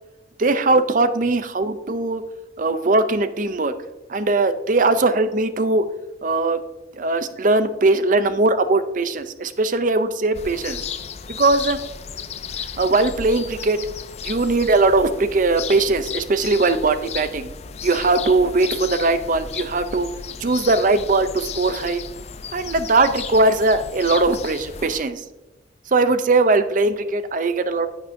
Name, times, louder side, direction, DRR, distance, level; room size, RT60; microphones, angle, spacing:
voice 1, 0.4-2.2 2.6-3.7 4.1-5.8 6.2-6.6 6.9-10.9 11.3-11.8 12.8-13.8 14.2-17.5 17.8-20.1 20.4-22.0 22.5-25.2 25.9-27.9, right 3 dB, 45° right, 12 dB, 0.5 m, -20 dB
sound 1, 10.3-25.0, left 7 dB, 35° left, 0.4 m, -34 dB
10.0 x 8.8 x 2.7 m, 1.1 s
head